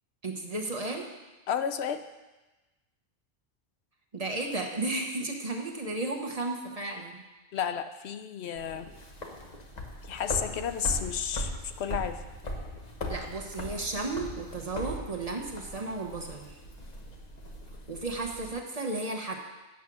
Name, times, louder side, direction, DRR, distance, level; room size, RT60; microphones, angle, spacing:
voice 1, 0.2-1.1 4.1-7.2 13.1-16.6 17.9-19.4, right 2 dB, 35° right, 1 dB, 1.1 m, -34 dB
voice 2, 1.5-2.0 7.5-8.9 10.1-11.5 11.8-12.2, left 8 dB, 75° left, 9 dB, 0.9 m, -31 dB
sound 1, 8.6-18.5, equal, 40° left, 1.1 m, -39 dB
8.6 x 7.3 x 6.1 m, 1.1 s
omnidirectional pair, 1.1 m